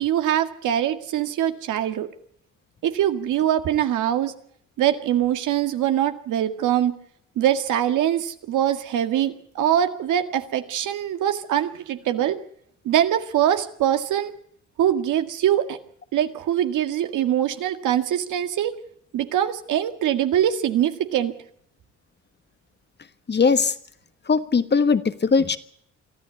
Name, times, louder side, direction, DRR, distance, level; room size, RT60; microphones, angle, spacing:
voice 1, 0.0-2.1 2.8-4.4 4.8-6.9 7.4-12.4 12.9-14.3 14.8-15.8 16.1-18.8 19.1-21.3, right 11 dB, 85° right, 7 dB, 2.0 m, -23 dB
voice 2, 23.3-23.7 24.3-25.6, left 5 dB, 35° left, 11 dB, 1.4 m, -19 dB
24.0 x 13.5 x 8.5 m, 0.65 s
cardioid pair, 90°, 30 cm